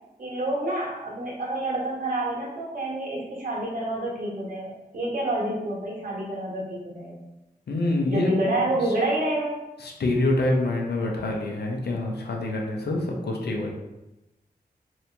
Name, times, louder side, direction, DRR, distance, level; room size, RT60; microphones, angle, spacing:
voice 1, 0.2-7.2 8.1-9.6, right 1 dB, 55° right, -4 dB, 1.2 m, -28 dB
voice 2, 7.7-8.4 9.8-13.7, left 2 dB, 85° left, 0 dB, 0.6 m, -26 dB
2.9 x 2.7 x 3.3 m, 0.97 s
wide cardioid pair, 75°, 17 cm